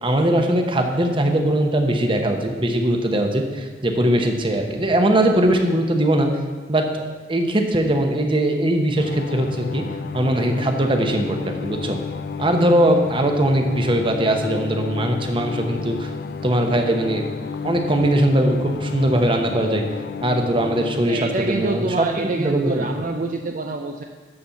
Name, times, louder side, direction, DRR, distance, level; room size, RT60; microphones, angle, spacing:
voice 1, 0.0-6.3 6.7-9.8 10.1-12.0 12.4-16.1 16.4-17.2 17.6-19.8 20.2-22.1 22.3-22.8, right 1 dB, 30° right, 4 dB, 1.0 m, -20 dB
sound 1, 9.0-21.1, left 5 dB, 60° left, 0.3 m, -31 dB
voice 2, 21.1-24.0, right 2 dB, 50° right, 4 dB, 0.5 m, -26 dB
12.0 x 4.3 x 7.0 m, 1.4 s
head